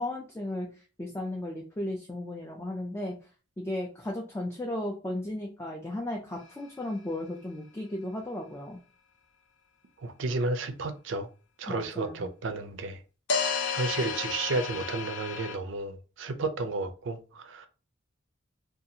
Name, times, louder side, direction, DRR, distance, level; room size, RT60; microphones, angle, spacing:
voice 1, 0.0-3.2 3.6-8.8 11.7-12.3, left 1 dB, 15° left, 0.3 m, -35 dB
sound 1, 6.4-6.5 13.3-15.6, left 5 dB, 65° left, 0.5 m, -31 dB
voice 2, 10.0-11.3 11.6-13.0 13.7-17.7, right 3 dB, 70° right, 0.4 m, -32 dB
2.6 x 2.3 x 2.7 m
head